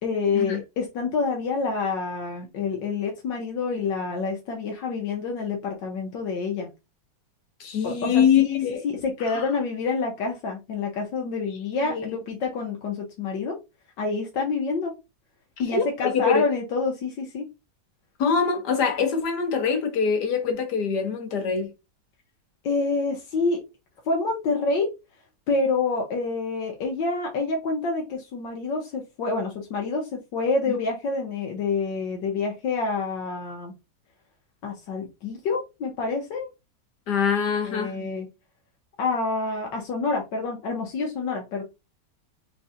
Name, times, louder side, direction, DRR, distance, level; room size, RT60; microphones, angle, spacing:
voice 1, 0.0-6.7 7.8-8.2 8.8-13.6 14.0-14.9 15.6-17.4 22.6-23.6 24.1-24.9 25.5-33.7 34.6-36.5 37.7-38.3 39.0-41.6, left 4 dB, 85° left, 1.6 m, -27 dB
voice 2, 7.6-8.8 9.3-9.5 11.8-12.1 15.7-16.4 18.2-21.7 30.7-30.8 37.1-38.1, left 6 dB, 70° left, 1.6 m, -24 dB
4.6 x 3.5 x 2.7 m
omnidirectional pair, 1.9 m